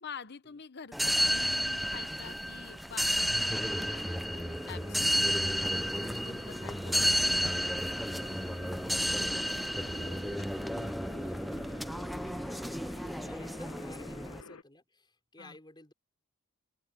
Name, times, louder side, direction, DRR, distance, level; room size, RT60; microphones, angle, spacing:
voice 1, 0.0-7.8 13.6-13.8 15.4-15.6, left 6 dB, 50° left, 1.0 m, -47 dB
sound 1, 0.9-14.4, equal, ahead, 0.4 m, -32 dB
sound 2, 3.0-14.6, left 4 dB, 85° left, 1.3 m, -51 dB
sound 3, 4.5-11.0, left 2 dB, 65° left, 7.8 m, -57 dB
voice 2, 9.8-15.9, left 1 dB, 20° left, 5.6 m, -56 dB
open air
head